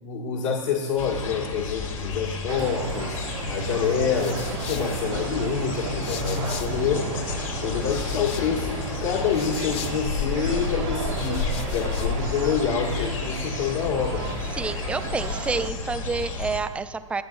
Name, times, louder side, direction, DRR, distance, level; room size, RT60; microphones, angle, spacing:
voice 1, 0.0-3.2 3.5-7.1 7.6-14.3, left 6 dB, 65° left, -3 dB, 1.6 m, -27 dB
sound 1, 1.0-16.6, left 4 dB, 85° left, 2.0 m, -31 dB
sound 2, 2.5-15.7, right 10 dB, 60° right, 0.6 m, -36 dB
sound 3, 3.8-7.0 7.3-10.4 11.0-12.2, left 8 dB, 35° left, 0.9 m, -42 dB
voice 2, 14.5-17.2, right 4 dB, 5° right, 11 dB, 0.3 m, -29 dB
24.0 x 8.4 x 2.4 m, 1.5 s
hypercardioid pair, 125°, 17 cm